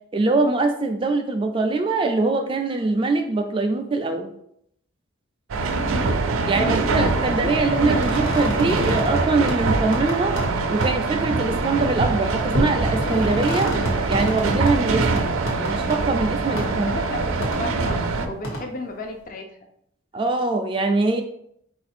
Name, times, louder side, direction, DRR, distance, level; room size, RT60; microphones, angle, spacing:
voice 1, 0.1-4.3 6.5-10.4 10.7-13.7 14.1-15.3 15.6-16.9 20.1-21.2, right 3 dB, 25° right, 5 dB, 0.3 m, -23 dB
sound 1, 5.5-18.3, right 3 dB, 90° right, 0.5 m, -23 dB
voice 2, 5.6-7.6 16.5-19.6, left 2 dB, 40° left, 3 dB, 0.4 m, -34 dB
sound 2, 7.1-9.2 9.5-9.6 9.9-10.5 10.8-10.9 11.6-11.8 12.5-14.7 15.2-16.0 16.6-16.7 17.4-17.6 18.4-18.6, equal, 80° left, 1.3 m, -29 dB
4.2 x 2.5 x 4.2 m, 0.71 s
head